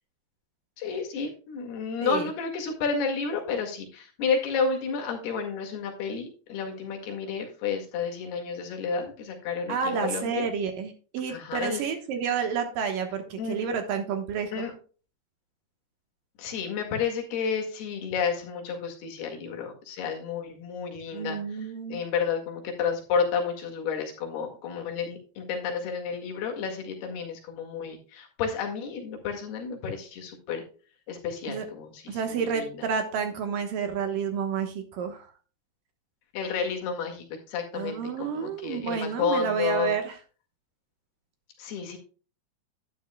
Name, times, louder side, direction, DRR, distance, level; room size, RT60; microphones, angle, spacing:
voice 1, 0.8-10.5 11.3-11.8 13.4-13.7 14.5-14.7 16.4-30.6 31.1-32.9 36.3-39.9 41.6-42.0, left 5 dB, 75° left, 2 dB, 3.9 m, -31 dB
voice 2, 9.7-14.7 21.1-22.0 31.5-31.7 32.1-35.3 37.7-40.2, right 6 dB, 65° right, 6 dB, 2.6 m, -30 dB
11.5 x 9.8 x 2.2 m, 0.37 s
omnidirectional pair, 4.6 m